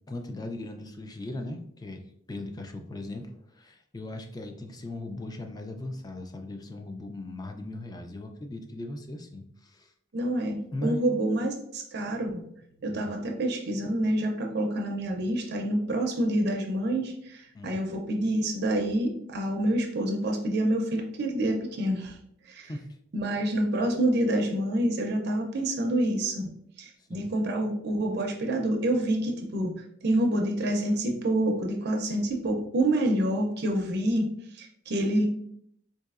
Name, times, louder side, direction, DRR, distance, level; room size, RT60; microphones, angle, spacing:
voice 1, 0.1-9.9 10.7-11.1 12.9-13.1 17.5-17.8 22.6-22.9 27.1-27.3, left 1 dB, 20° left, 5 dB, 0.4 m, -38 dB
voice 2, 10.1-12.5 12.8-22.2 22.4-22.7 23.1-26.5 26.8-29.7 30.0-34.3 34.5-35.3, right 1 dB, 55° right, 2 dB, 0.5 m, -27 dB
4.0 x 2.6 x 2.4 m, 0.71 s
head